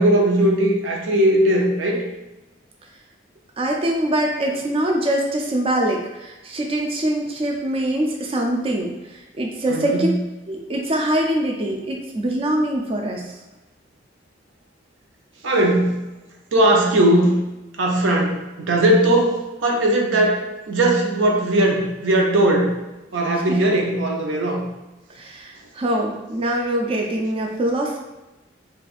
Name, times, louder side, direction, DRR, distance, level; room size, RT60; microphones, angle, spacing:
voice 1, 0.0-2.0 9.7-10.1 15.4-16.0 16.5-17.4 17.8-19.4 19.6-22.7 23.1-24.6, right 1 dB, 85° right, 1 dB, 0.6 m, -18 dB
voice 2, 3.6-10.1 10.5-13.3 23.5-23.6 25.1-28.0, right 1 dB, 30° right, 1 dB, 0.3 m, -23 dB
4.1 x 2.3 x 2.4 m, 1.0 s
head